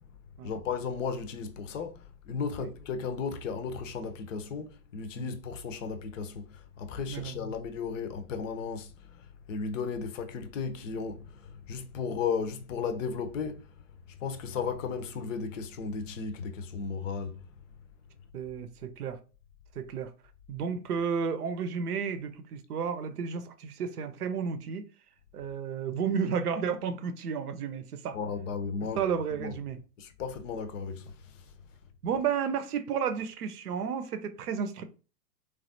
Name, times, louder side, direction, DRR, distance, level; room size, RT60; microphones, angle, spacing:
voice 1, 0.4-17.5 28.1-29.0 29.4-29.5 30.0-31.5, left 5 dB, 55° left, 0.6 m, -35 dB
voice 2, 18.3-19.2 19.8-20.1 20.5-24.8 25.3-28.2 29.0-29.8 32.0-34.8, right 6 dB, 70° right, 0.7 m, -32 dB
3.2 x 2.4 x 2.5 m
hypercardioid pair, 120°, 48 cm